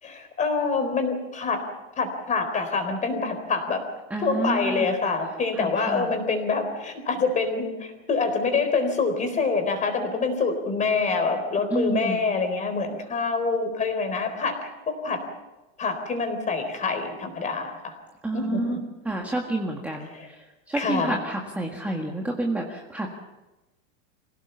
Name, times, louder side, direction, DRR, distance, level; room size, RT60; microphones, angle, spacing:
voice 1, 0.0-1.6 2.0-3.8 4.2-15.2 15.8-18.0 18.3-18.8 20.1-20.3 20.7-21.2, left 4 dB, 20° left, 7 dB, 4.0 m, -26 dB
voice 2, 4.1-4.9 5.5-6.1 11.7-12.2 18.2-18.8 19.0-23.1, right 2 dB, 5° right, 0 dB, 1.7 m, -29 dB
25.5 x 17.0 x 7.0 m, 1.1 s
supercardioid pair, 155°, 39 cm